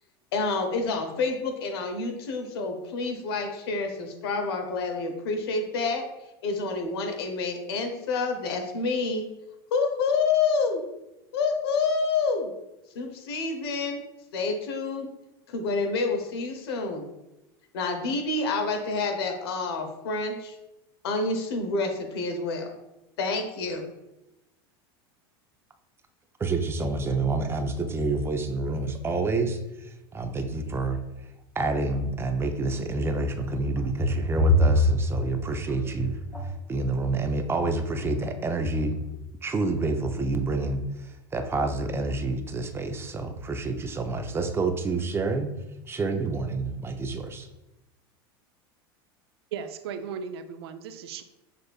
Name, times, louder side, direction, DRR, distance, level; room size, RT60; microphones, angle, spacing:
voice 1, 0.3-6.1 6.4-9.3 9.7-10.8 11.3-12.5 12.9-14.0 14.3-15.1 15.5-17.0 17.7-20.6 21.0-22.7 23.2-23.9, left 4 dB, 80° left, 5 dB, 0.8 m, -28 dB
voice 2, 26.4-31.0 31.6-39.0 39.4-45.5 45.9-47.5, right 3 dB, 20° right, 6 dB, 0.5 m, -28 dB
sound 1, 33.2-36.7 38.0-38.3 38.6-39.0, left 2 dB, 10° left, 1.2 m, -25 dB
voice 3, 49.5-51.2, right 7 dB, 80° right, 10 dB, 0.4 m, -36 dB
6.4 x 2.5 x 2.3 m, 0.93 s
hypercardioid pair, 105°, 13 cm